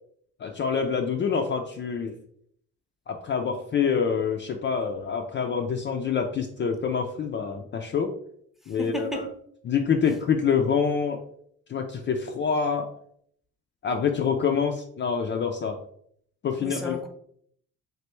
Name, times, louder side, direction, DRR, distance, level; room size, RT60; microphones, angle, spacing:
voice 1, 0.4-2.1 3.1-8.1 8.7-9.2 9.7-11.2 11.7-12.9 13.8-15.8 16.4-17.0, left 6 dB, 40° left, 3 dB, 0.4 m, -26 dB
voice 2, 8.8-9.3 16.6-17.1, left 1 dB, ahead, 3 dB, 0.6 m, -32 dB
3.3 x 2.5 x 3.0 m, 0.65 s
cardioid pair, 90°, 30 cm